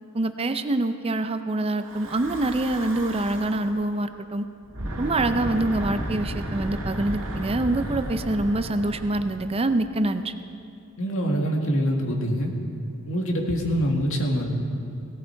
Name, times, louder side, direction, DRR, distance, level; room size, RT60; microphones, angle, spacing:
voice 1, 0.1-4.5 5.0-10.3, right 2 dB, 25° right, 9 dB, 0.5 m, -25 dB
Breathing / Wind, 1.8-3.7 4.6-10.0, right 1 dB, 70° right, 2.2 m, -33 dB
voice 2, 11.0-12.5 13.1-14.5, equal, 65° left, 1 dB, 2.1 m, -24 dB
17.5 x 17.5 x 4.6 m, 2.7 s
head